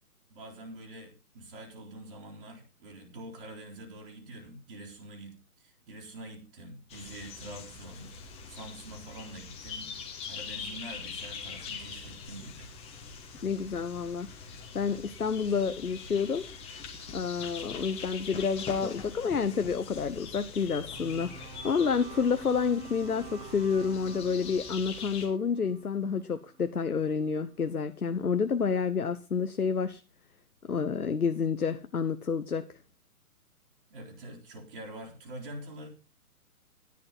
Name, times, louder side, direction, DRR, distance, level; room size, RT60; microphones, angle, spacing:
voice 1, 0.3-9.9 10.2-12.7 33.9-35.9, right 1 dB, 35° right, 3.8 m, -45 dB
sound 1, 6.9-25.3, left 5 dB, 15° left, 2.1 m, -43 dB
voice 2, 13.4-14.3 14.7-16.5 17.1-30.0 30.7-32.7, left 6 dB, 75° left, 1.0 m, -29 dB
sound 2, 21.0-27.2, right 5 dB, 15° right, 2.0 m, -48 dB
13.5 x 11.0 x 4.0 m
figure-of-eight pair, 130°, 45 cm